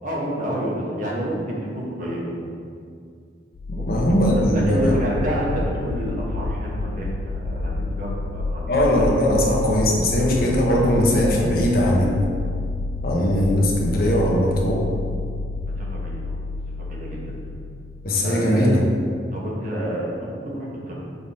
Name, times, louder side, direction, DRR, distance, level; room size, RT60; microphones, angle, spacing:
voice 1, 0.0-2.3 3.7-8.7 15.6-16.4 16.8-17.3 18.2-18.8 19.3-20.9, equal, 45° right, -4 dB, 1.2 m, -29 dB
sound 1, 3.6-18.3, left 3 dB, 70° left, 0.3 m, -29 dB
voice 2, 3.7-4.9 8.7-12.2 13.0-14.9 18.0-18.8, equal, 50° left, -3 dB, 1.0 m, -20 dB
6.9 x 3.6 x 4.2 m, 2.2 s
head